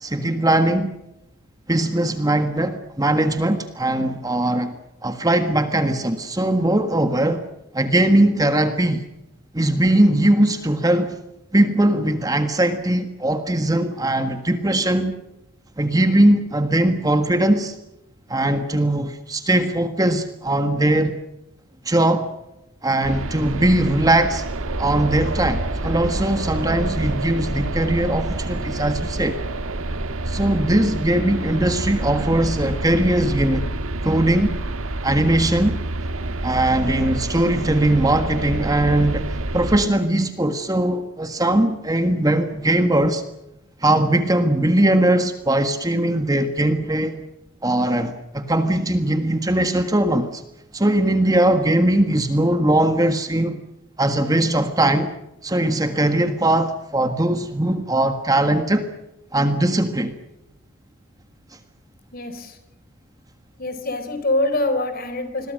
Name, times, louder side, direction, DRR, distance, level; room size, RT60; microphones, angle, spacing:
voice 1, 0.0-0.9 1.7-4.7 5.0-7.4 7.7-9.0 9.5-11.2 11.5-15.2 15.8-17.8 18.3-21.2 21.8-22.3 22.8-24.4 24.8-29.4 30.2-33.7 34.0-34.6 35.0-35.8 36.4-39.3 39.5-43.2 43.8-47.2 47.6-50.4 50.7-53.6 54.0-55.1 55.4-58.9 59.3-60.2, right 1 dB, 15° right, 8 dB, 1.5 m, -20 dB
sound 1, 23.0-39.9, right 2 dB, 70° right, 1.6 m, -27 dB
voice 2, 62.1-62.6 63.6-65.5, left 2 dB, 40° left, 10 dB, 4.2 m, -24 dB
28.0 x 22.0 x 6.5 m, 0.89 s
head